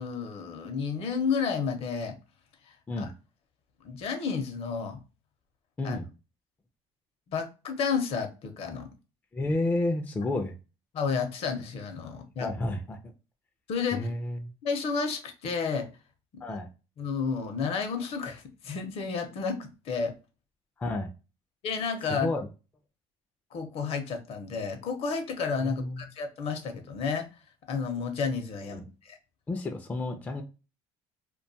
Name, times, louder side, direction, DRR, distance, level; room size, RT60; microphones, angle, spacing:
voice 1, 0.0-2.2 3.0-3.1 3.8-5.0 5.8-6.0 7.3-8.9 10.9-12.5 13.7-14.1 14.6-15.9 16.3-16.4 17.0-20.2 21.6-22.3 23.5-27.3 27.7-29.2, left 5 dB, 55° left, 0.6 m, -31 dB
voice 2, 9.3-10.6 12.4-13.0 13.9-14.5 16.4-16.7 20.8-21.1 22.1-22.5 25.6-26.0 28.7-28.8 29.5-30.4, left 2 dB, 15° left, 0.3 m, -31 dB
2.4 x 2.2 x 2.6 m
cardioid pair, 130°, 12 cm